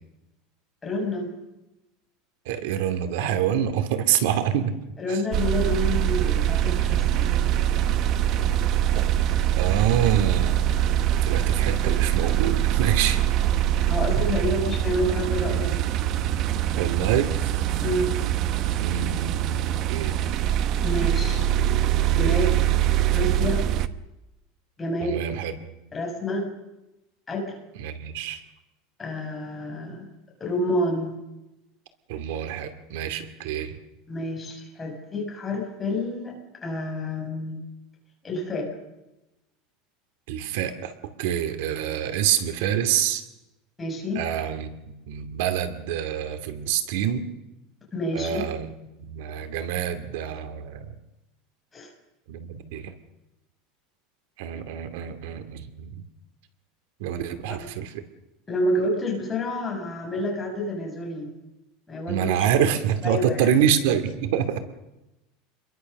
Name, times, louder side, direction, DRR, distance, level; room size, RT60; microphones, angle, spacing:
voice 1, 0.8-1.3 5.0-7.3 11.8-11.9 13.8-15.9 17.8-18.1 20.8-21.5 22.2-22.5 23.1-23.7 24.8-25.2 25.9-26.5 27.3-27.5 29.0-30.1 30.4-31.1 34.1-36.3 36.6-37.6 38.2-38.7 43.8-44.3 47.9-48.4 51.7-51.9 57.5-57.6 58.5-61.3 61.9-62.4 63.0-63.6, left 1 dB, 10° left, -1 dB, 6.4 m, -28 dB
voice 2, 2.5-4.8 5.1-5.2 9.5-10.7 11.2-13.3 16.7-17.6 18.8-19.6 19.9-20.2 25.0-25.5 27.8-28.4 32.1-33.7 40.3-40.9 41.2-43.2 44.1-44.8 45.1-47.3 48.1-48.7 49.0-50.9 52.3-52.9 54.4-56.0 57.0-57.9 62.1-64.6, right 9 dB, 65° right, 9 dB, 2.4 m, -26 dB
sound 1, 5.3-23.9, right 11 dB, 35° right, 1.0 m, -23 dB
28.0 x 22.5 x 6.7 m, 0.95 s
supercardioid pair, 175°, 0 cm